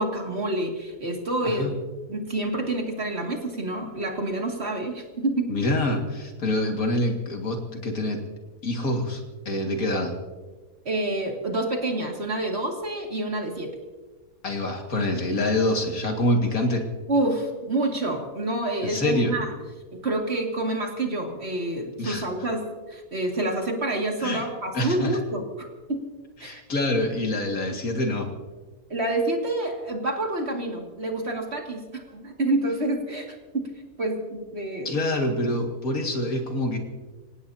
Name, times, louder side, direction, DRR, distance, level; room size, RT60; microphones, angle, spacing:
voice 1, 0.0-1.7 2.1-5.6 10.8-13.7 17.1-19.5 19.9-26.0 26.4-26.6 28.9-33.7 34.0-35.0, right 2 dB, 45° right, 1 dB, 2.5 m, -28 dB
voice 2, 5.5-8.2 8.6-10.1 14.4-16.8 18.8-19.3 22.0-22.2 24.2-24.4 24.7-25.1 26.4-28.3 34.8-36.8, left 1 dB, 75° left, 2 dB, 2.5 m, -26 dB
27.0 x 17.0 x 2.8 m, 1.3 s
omnidirectional pair, 1.5 m